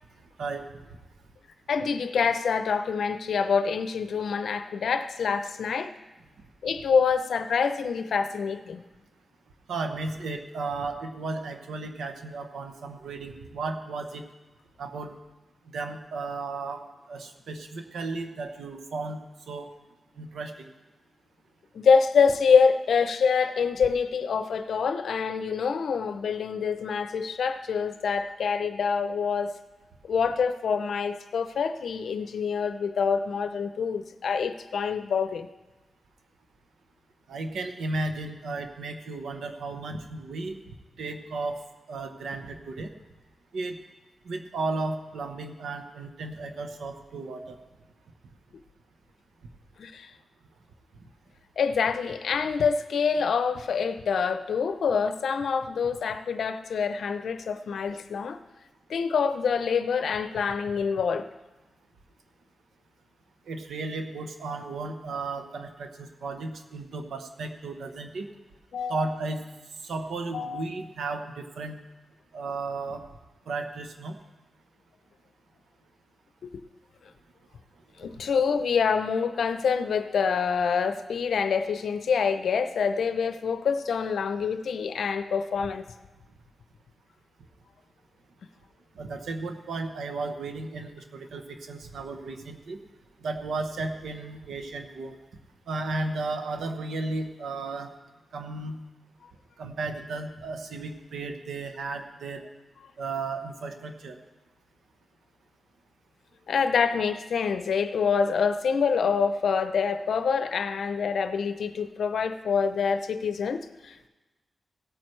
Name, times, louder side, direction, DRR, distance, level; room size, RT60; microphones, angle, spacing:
voice 1, 1.7-5.9 6.6-8.8 21.7-29.5 30.0-35.5 49.8-50.1 51.6-58.4 58.9-61.3 68.7-69.1 70.3-70.7 76.4-76.6 78.0-85.8 106.5-114.1, left 6 dB, 80° left, 10 dB, 0.6 m, -26 dB
voice 2, 9.7-14.2 14.8-15.1 15.7-16.8 17.1-19.2 19.5-19.7 20.2-20.7 37.3-40.6 41.0-41.6 41.9-42.9 43.5-43.8 44.2-47.6 63.5-68.3 68.9-69.4 69.8-71.8 72.3-73.0 73.5-74.2 89.0-92.8 93.2-95.2 95.7-97.9 98.3-98.8 99.6-102.4 103.0-104.2, right 3 dB, 85° right, 6 dB, 0.9 m, -34 dB
17.0 x 8.9 x 3.2 m, 1.2 s
cardioid pair, 50°, 0 cm